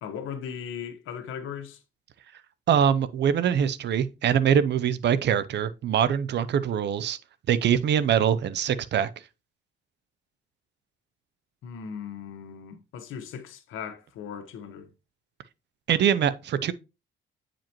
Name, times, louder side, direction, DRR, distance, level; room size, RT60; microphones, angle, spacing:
voice 1, 0.0-1.8 11.6-14.9, left 7 dB, 85° left, 1.3 m, -38 dB
voice 2, 2.7-7.2 7.5-9.1 15.9-16.7, right 8 dB, 60° right, 0.6 m, -23 dB
8.9 x 5.1 x 3.0 m
cardioid pair, 90°, 20 cm